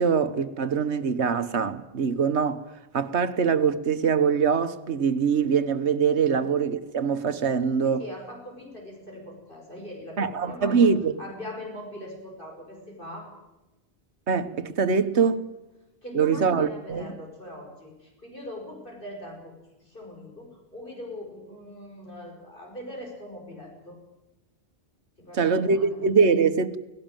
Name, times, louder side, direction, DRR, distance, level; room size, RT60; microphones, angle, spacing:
voice 1, 0.0-2.6 2.9-8.0 10.2-11.1 14.3-15.4 16.1-17.1 25.3-26.8, right 6 dB, 80° right, 1.5 m, -23 dB
voice 2, 7.8-10.9 11.2-13.4 16.0-24.0 25.2-26.0, left 1 dB, 50° left, 5.6 m, -41 dB
18.0 x 18.0 x 9.0 m
omnidirectional pair, 1.1 m